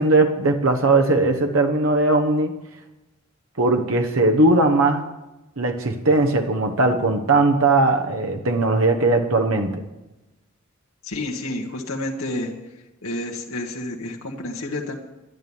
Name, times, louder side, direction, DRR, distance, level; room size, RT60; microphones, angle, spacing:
voice 1, 0.0-2.6 3.6-5.0 5.6-9.8, right 2 dB, 80° right, 3 dB, 1.2 m, -19 dB
voice 2, 11.0-12.5 13.0-15.0, left 1 dB, 85° left, -2 dB, 1.5 m, -29 dB
11.5 x 11.0 x 7.1 m, 1.0 s
head